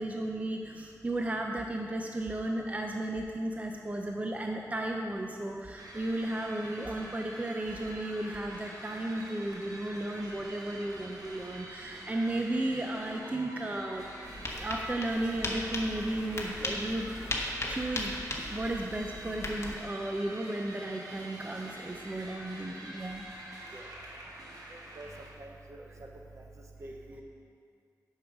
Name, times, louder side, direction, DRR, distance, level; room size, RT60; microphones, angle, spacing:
voice 1, 0.0-14.1 14.5-17.1 17.7-23.7, right 1 dB, 25° right, 2 dB, 0.6 m, -34 dB
sound 1, 5.8-25.3, right 1 dB, 80° right, 1.4 m, -46 dB
sound 2, 14.2-19.8, left 1 dB, 45° left, 1.0 m, -37 dB
voice 2, 24.7-25.1 25.4-25.9 26.4-26.5 26.8-27.2, right 1 dB, 55° right, 1 dB, 0.9 m, -48 dB
8.2 x 6.4 x 5.2 m, 2.3 s
wide cardioid pair, 100°, 6 cm